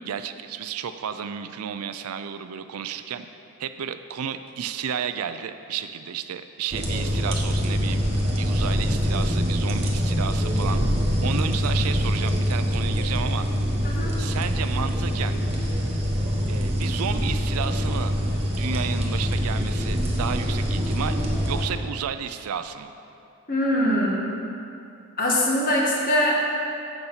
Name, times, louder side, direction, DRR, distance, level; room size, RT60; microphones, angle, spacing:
voice 1, 0.1-3.3 3.6-8.0 8.3-10.8 11.2-13.5 14.2-15.4 16.5-18.1 18.6-21.2 21.5-22.9, right 7 dB, 80° right, 10 dB, 0.4 m, -32 dB
sound 1, 6.7-21.6, equal, 25° right, 1.2 m, -24 dB
voice 2, 13.8-14.2 23.5-24.4 25.2-26.3, left 1 dB, 40° left, -3 dB, 1.5 m, -23 dB
8.0 x 7.0 x 5.6 m, 2.6 s
head